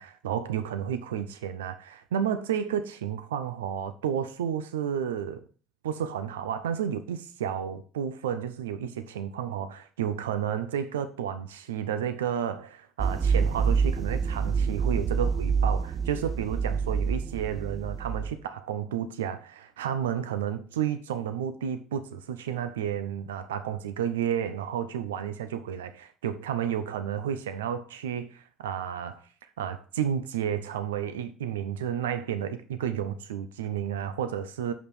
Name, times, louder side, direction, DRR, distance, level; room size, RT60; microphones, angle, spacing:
voice 1, 0.0-5.4 5.8-29.2 29.6-34.7, right 9 dB, 85° right, 0.7 m, -31 dB
sound 1, 13.0-18.3, right 5 dB, 35° right, 0.8 m, -27 dB
7.3 x 5.5 x 6.0 m
hypercardioid pair, 60°, 0 cm